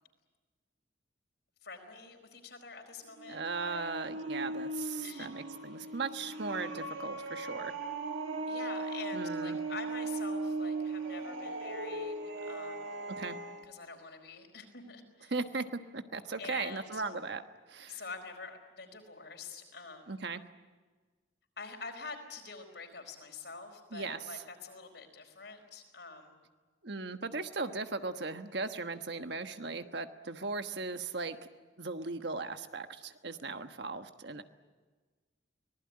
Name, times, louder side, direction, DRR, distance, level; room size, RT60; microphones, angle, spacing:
voice 1, 1.6-3.9 5.0-5.3 5.8-6.0 8.5-12.9 13.7-15.3 16.4-17.0 17.9-20.2 21.6-26.4, left 4 dB, 60° left, 4 dB, 4.7 m, -46 dB
sound 1, 3.1-13.6, right 2 dB, 85° right, 2.3 m, -38 dB
voice 2, 3.3-7.7 9.1-9.6 13.2-13.4 15.3-17.4 17.7-18.0 20.1-20.4 23.9-24.4 26.8-31.4 31.8-34.4, right 3 dB, 65° right, 8 dB, 1.3 m, -38 dB
24.5 x 19.5 x 9.7 m, 1.4 s
head